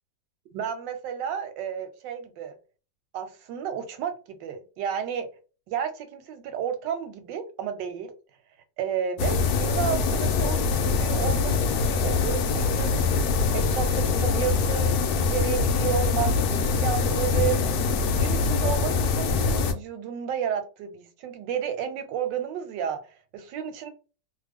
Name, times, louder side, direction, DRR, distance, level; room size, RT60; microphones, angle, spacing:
voice 1, 0.5-2.6 3.1-5.3 5.7-8.1 8.8-12.9 13.5-17.8 18.2-23.9, right 8 dB, 85° right, 1.3 m, -32 dB
sound 1, 9.2-19.7, left 4 dB, 70° left, 0.9 m, -24 dB
3.0 x 2.1 x 3.4 m
omnidirectional pair, 1.9 m